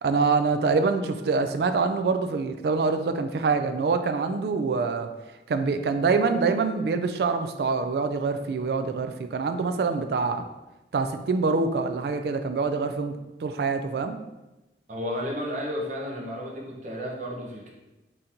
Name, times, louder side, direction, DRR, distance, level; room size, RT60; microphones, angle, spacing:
voice 1, 0.0-5.1 5.5-10.4 10.9-13.2 13.4-14.2, right 4 dB, 65° right, 8 dB, 0.3 m, -25 dB
voice 2, 14.9-17.7, equal, 45° right, -2 dB, 0.8 m, -32 dB
4.3 x 3.8 x 2.6 m, 1.0 s
head